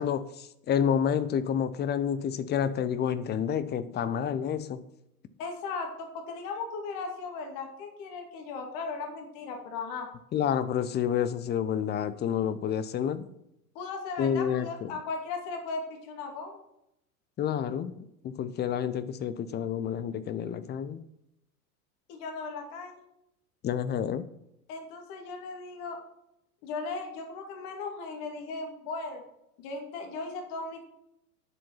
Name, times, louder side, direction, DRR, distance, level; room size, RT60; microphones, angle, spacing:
voice 1, 0.0-4.8 10.3-13.3 14.2-14.9 17.4-17.9 18.2-21.0 23.6-24.2, left 8 dB, 20° left, 14 dB, 0.7 m, -29 dB
voice 2, 5.4-10.1 13.7-16.6 22.1-23.0 24.7-26.0 26.6-29.2 29.6-30.8, left 4 dB, 45° left, 3 dB, 2.3 m, -37 dB
10.0 x 7.3 x 5.6 m, 0.82 s
figure-of-eight pair, 85°, 45 cm